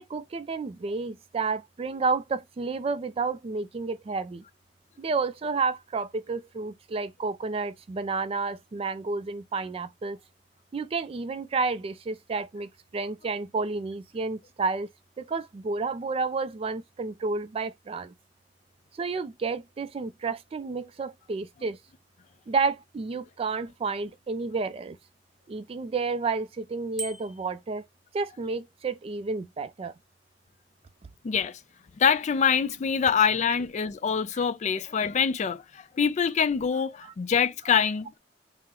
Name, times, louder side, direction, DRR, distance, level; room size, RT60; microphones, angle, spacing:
voice 1, 0.0-4.4 5.0-10.2 10.7-14.9 15.2-18.1 18.9-21.8 22.5-25.0 25.5-27.8 28.1-29.9 37.0-37.1, right 4 dB, 35° right, 0.3 m, -31 dB
Bicycle bell, 27.0-27.6, right 4 dB, ahead, 0.7 m, -38 dB
voice 2, 31.2-31.6 32.0-38.2, left 6 dB, 40° left, 0.4 m, -25 dB
3.7 x 2.0 x 4.2 m
head